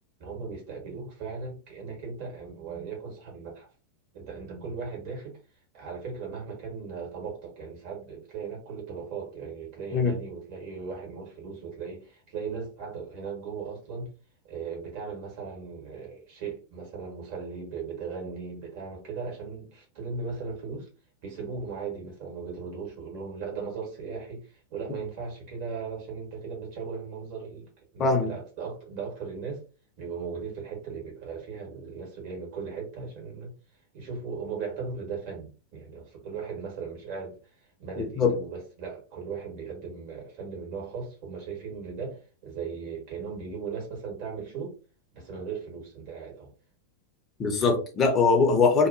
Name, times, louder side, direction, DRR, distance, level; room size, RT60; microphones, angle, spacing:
voice 1, 0.2-3.7 4.1-5.4 5.7-14.1 14.4-20.9 21.2-27.7 27.9-29.6 30.0-33.5 33.9-37.4 37.8-44.7 45.1-46.5, right 5 dB, 45° right, 1.6 m, -37 dB
voice 2, 28.0-28.3 38.0-38.4 47.4-48.9, left 4 dB, 25° left, 0.8 m, -22 dB
2.9 x 2.4 x 2.6 m
figure-of-eight pair, 90°, 0 cm